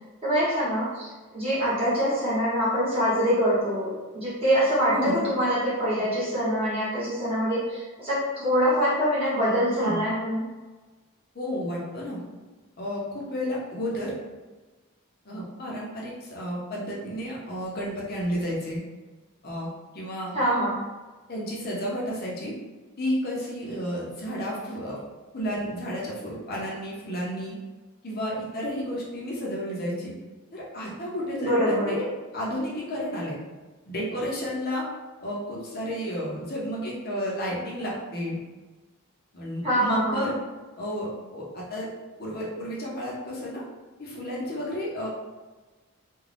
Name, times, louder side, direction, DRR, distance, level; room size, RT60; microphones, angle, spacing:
voice 1, 0.2-10.4 20.3-20.8 31.4-32.0 39.6-40.3, equal, 25° right, -10 dB, 1.0 m, -24 dB
voice 2, 4.9-5.2 9.8-10.0 11.3-12.2 12.8-14.2 15.2-18.8 19.4-19.7 19.9-20.4 21.3-22.5 23.0-25.0 25.3-27.6 28.0-30.1 30.5-32.0 32.3-33.4 33.9-34.9 35.2-38.4 39.3-40.3 40.8-41.9 42.2-43.6 44.0-45.1, equal, 45° left, -4 dB, 0.7 m, -31 dB
2.5 x 2.3 x 3.2 m, 1.3 s
head